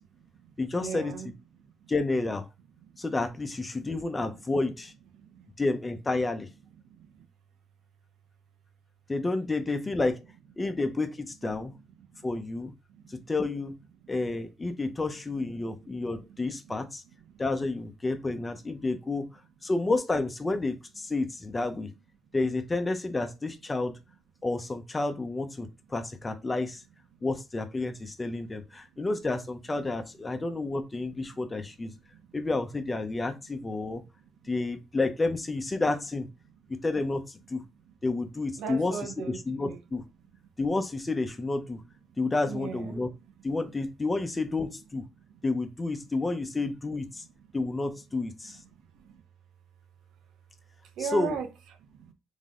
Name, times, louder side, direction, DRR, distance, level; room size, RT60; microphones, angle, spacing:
voice 1, 0.0-1.9 2.8-3.0 3.7-3.9 4.3-4.5 5.1-5.5 6.7-7.3 10.6-10.7 11.6-12.3 12.9-13.3 14.0-14.4 15.6-16.8 17.2-17.4 18.3-18.4 27.1-27.2 28.2-28.3 28.9-29.0 31.3-31.7 32.1-32.4 33.8-34.6 37.6-37.9 38.6-39.8 40.4-40.5 42.1-42.2 42.4-43.2 43.5-43.6 45.1-45.5 47.2-47.5 48.4-49.2 51.0-51.5 51.8-52.1, right 6 dB, 90° right, 0.8 m, -42 dB
voice 2, 0.6-1.1 1.9-2.5 3.0-4.9 5.6-6.5 9.1-10.2 10.6-11.7 12.2-12.7 13.1-13.8 14.1-17.0 17.4-19.3 19.6-21.9 22.3-24.0 24.4-26.8 27.2-31.9 32.3-34.0 34.5-36.3 36.8-37.6 38.0-38.9 39.5-40.0 40.6-41.8 42.2-43.1 43.4-45.0 45.4-47.2 47.5-48.6 51.1-51.4, left 2 dB, 25° left, 0.9 m, -30 dB
3.9 x 3.6 x 3.7 m
cardioid pair, 90°, 0 cm